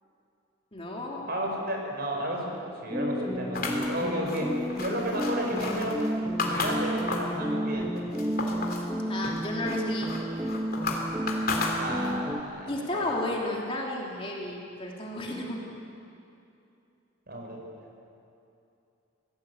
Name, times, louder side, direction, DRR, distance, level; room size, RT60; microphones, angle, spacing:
voice 1, 0.7-1.3 9.1-10.1 12.7-15.6, left 1 dB, 25° left, -2 dB, 3.1 m, -33 dB
voice 2, 1.3-6.0 6.4-8.1 11.8-13.1 17.3-17.6, right 1 dB, 50° right, 0 dB, 5.3 m, -33 dB
sound 1, 2.9-12.4, equal, 5° right, 1.2 m, -31 dB
sound 2, 3.5-7.4 7.8-8.9 9.2-12.3, left 3 dB, 45° left, 3.3 m, -33 dB
26.5 x 17.5 x 8.2 m, 2.7 s
head